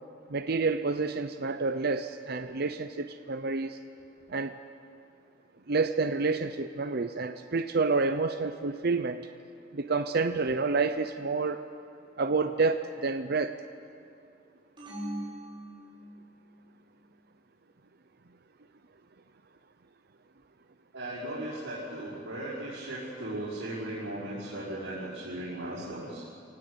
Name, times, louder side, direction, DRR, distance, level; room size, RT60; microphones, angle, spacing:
voice 1, 0.3-3.8 4.3-4.6 5.7-9.3 9.7-11.6 12.2-13.6, right 4 dB, 55° right, 8 dB, 0.7 m, -29 dB
sound 1, 14.8-16.4, right 1 dB, 25° right, 6.5 m, -40 dB
voice 2, 20.9-26.2, right 1 dB, 80° right, -11 dB, 5.6 m, -37 dB
25.5 x 18.5 x 8.1 m, 2.6 s
head